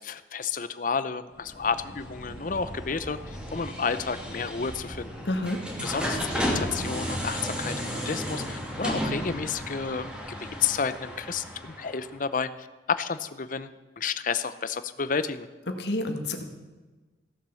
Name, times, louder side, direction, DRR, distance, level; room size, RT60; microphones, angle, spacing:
voice 1, 0.0-5.1 5.8-10.1 10.4-13.7 14.0-15.5, left 5 dB, 45° left, 13 dB, 0.6 m, -31 dB
sound 1, 1.4-12.1, equal, 5° right, 2.3 m, -34 dB
voice 2, 5.2-5.6 15.7-16.4, left 1 dB, 70° left, 5 dB, 1.6 m, -29 dB
16.0 x 7.4 x 7.0 m, 1.3 s
head